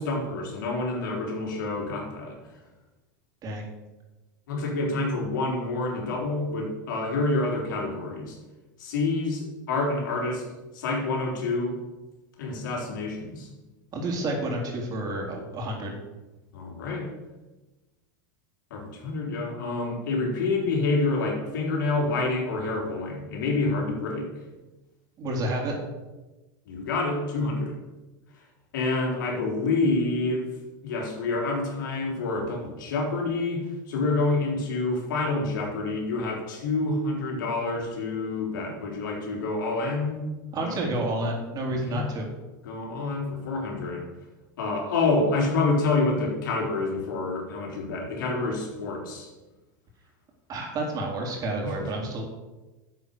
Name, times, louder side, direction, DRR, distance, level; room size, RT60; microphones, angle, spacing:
voice 1, 0.0-2.4 4.5-8.4 8.8-10.4 10.7-11.8 12.4-13.5 16.5-17.1 18.7-24.3 26.6-27.8 28.7-30.5 30.8-40.9 41.7-42.1 42.6-44.1 44.6-49.3 51.6-51.9, left 3 dB, 80° left, -1 dB, 4.0 m, -28 dB
voice 2, 13.9-16.0 25.2-25.7 40.5-42.3 50.5-52.2, right 1 dB, 35° right, 0 dB, 4.0 m, -30 dB
11.0 x 7.8 x 6.9 m, 1.1 s
supercardioid pair, 110°, 10 cm